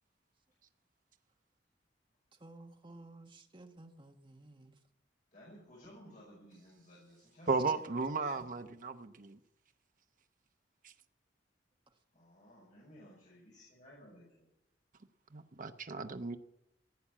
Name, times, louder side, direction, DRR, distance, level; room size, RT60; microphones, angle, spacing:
voice 1, 2.4-4.8, right 2 dB, 30° right, 1.4 m, -54 dB
voice 2, 5.3-8.5 12.1-14.5, equal, 45° left, 5.5 m, -57 dB
voice 3, 7.5-9.4 10.8-10.9 15.3-16.4, right 4 dB, 50° right, 0.7 m, -35 dB
16.5 x 8.7 x 8.5 m
head